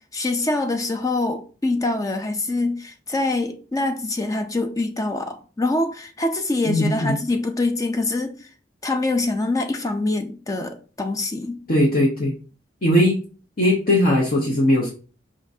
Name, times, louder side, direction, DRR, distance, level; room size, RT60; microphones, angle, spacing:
voice 1, 0.1-8.5 8.8-11.6, left 2 dB, 20° left, 0.4 m, -24 dB
voice 2, 6.7-7.2 11.7-12.3 12.8-13.2 13.6-14.9, left 1 dB, 50° left, 0.9 m, -19 dB
5.1 x 3.7 x 2.7 m
head